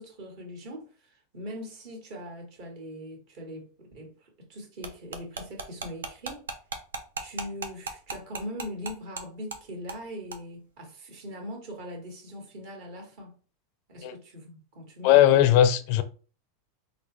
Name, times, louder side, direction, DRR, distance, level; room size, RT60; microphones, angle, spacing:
voice 1, 0.0-6.5 7.2-13.3 13.9-15.4, equal, 60° right, 1.5 m, -41 dB
sound 1, 4.8-9.2 9.5-9.6 9.9-10.0 10.3-10.4, right 4 dB, 85° right, 0.5 m, -35 dB
voice 2, 15.0-16.0, left 11 dB, 60° left, 0.4 m, -18 dB
3.9 x 2.1 x 3.2 m
hypercardioid pair, 95°, 0 cm